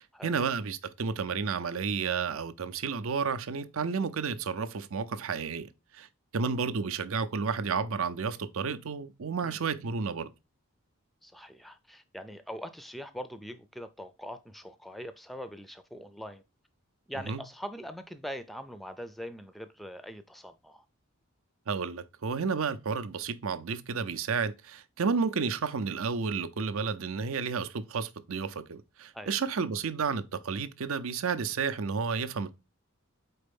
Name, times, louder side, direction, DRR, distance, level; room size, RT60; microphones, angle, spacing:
voice 1, 0.0-6.1 6.3-10.3 17.2-17.4 21.7-32.6, right 5 dB, 70° right, 0.6 m, -31 dB
voice 2, 11.2-16.4 17.1-20.8 29.1-29.3, equal, ahead, 0.4 m, -42 dB
4.4 x 4.3 x 5.2 m
head